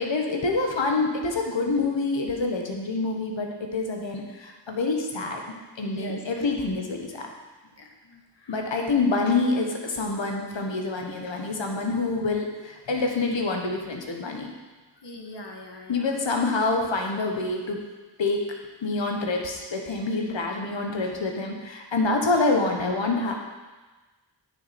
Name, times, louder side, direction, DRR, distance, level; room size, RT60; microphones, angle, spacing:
voice 1, 0.0-5.4 5.8-7.3 8.5-14.5 15.9-17.8 18.2-18.5 18.8-23.3, left 3 dB, 90° left, 2 dB, 1.2 m, -26 dB
voice 2, 5.9-6.5 7.8-8.6 15.0-16.1, left 1 dB, 70° left, 2 dB, 1.4 m, -42 dB
9.2 x 6.8 x 4.3 m, 1.3 s
cardioid pair, 40°, 44 cm